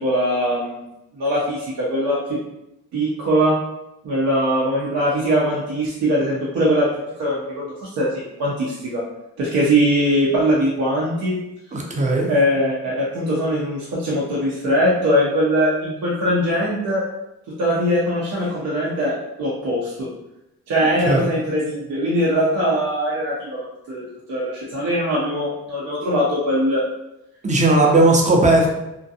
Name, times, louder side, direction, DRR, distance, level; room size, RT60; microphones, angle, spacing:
voice 1, 0.0-0.8 1.1-2.4 2.9-3.6 4.0-6.9 7.2-9.0 9.4-11.4 12.3-17.0 17.6-20.1 20.7-26.8, equal, 65° right, -6 dB, 0.7 m, -21 dB
voice 2, 11.7-12.3 21.0-21.3 27.4-28.7, right 2 dB, 25° right, 0 dB, 0.6 m, -16 dB
2.5 x 2.2 x 2.7 m, 0.91 s
cardioid pair, 90°, 30 cm